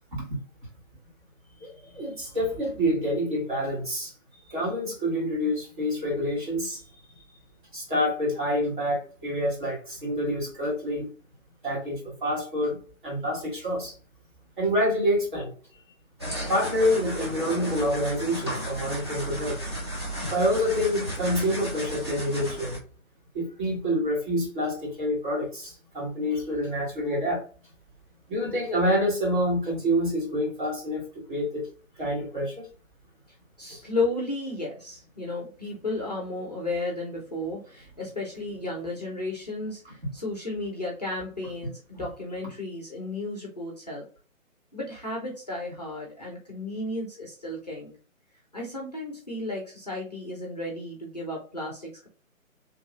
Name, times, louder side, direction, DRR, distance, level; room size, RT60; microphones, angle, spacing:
voice 1, 1.6-4.1 4.5-6.8 7.7-11.1 11.6-13.9 14.6-15.5 16.5-19.6 20.3-22.8 23.3-27.4 28.3-31.7 32.0-32.7, equal, 35° right, -3 dB, 1.5 m, -27 dB
sound 1, 16.2-22.8, equal, 20° right, 0.6 m, -34 dB
voice 2, 33.6-44.1 44.7-47.9 48.5-52.1, left 2 dB, 30° left, -1 dB, 0.5 m, -33 dB
3.0 x 2.6 x 2.3 m, 0.39 s
figure-of-eight pair, 145°, 41 cm